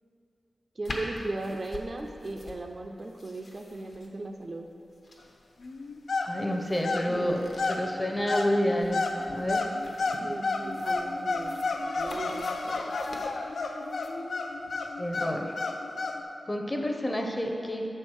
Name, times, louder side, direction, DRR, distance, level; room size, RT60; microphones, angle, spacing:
sound 1, 0.8-14.1, left 1 dB, 55° left, 0.9 m, -46 dB
voice 1, 0.8-4.7 7.1-7.5 10.2-13.0, right 2 dB, 40° right, 3 dB, 0.4 m, -37 dB
sound 2, 5.6-16.2, left 3 dB, 80° left, 0.4 m, -32 dB
voice 2, 6.2-7.4 7.7-9.0 9.3-9.7 15.0-15.5 16.5-17.9, equal, 15° left, 2 dB, 0.6 m, -29 dB
7.1 x 4.4 x 6.3 m, 2.8 s
wide cardioid pair, 135°, 0 cm